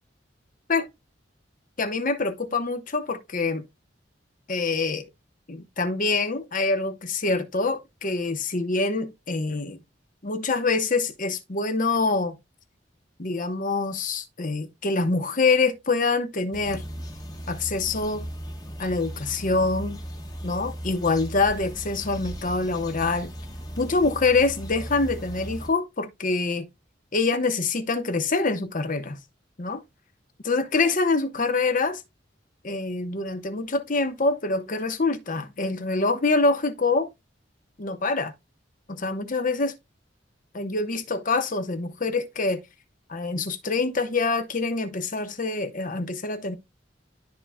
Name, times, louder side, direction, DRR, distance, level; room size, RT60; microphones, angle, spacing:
voice 1, 1.8-3.6 4.5-5.1 5.5-9.8 10.2-12.4 13.2-16.8 17.5-18.3 18.8-20.0 20.4-23.3 23.8-26.7 27.1-29.2 29.6-29.8 30.4-32.0 32.6-37.1 37.8-38.3 38.9-39.7 40.5-42.6 43.1-46.6, left 3 dB, 45° left, 1.0 m, -25 dB
sound 1, 16.5-25.7, equal, 20° left, 1.3 m, -37 dB
12.5 x 4.3 x 2.2 m
head